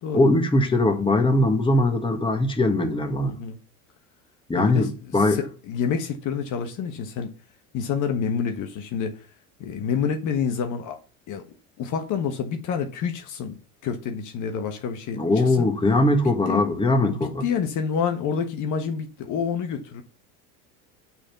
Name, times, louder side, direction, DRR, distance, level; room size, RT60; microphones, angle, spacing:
voice 1, 0.1-3.3 4.5-5.4 15.1-17.4, left 2 dB, 15° left, 1.7 m, -21 dB
voice 2, 3.2-3.6 4.6-4.9 5.1-7.3 7.7-9.2 9.6-11.0 11.3-11.4 11.8-13.6 13.8-15.2 15.5-15.7 16.5-16.6 17.0-20.0, left 7 dB, 50° left, 1.4 m, -28 dB
8.8 x 4.4 x 6.0 m
supercardioid pair, 100°, 39 cm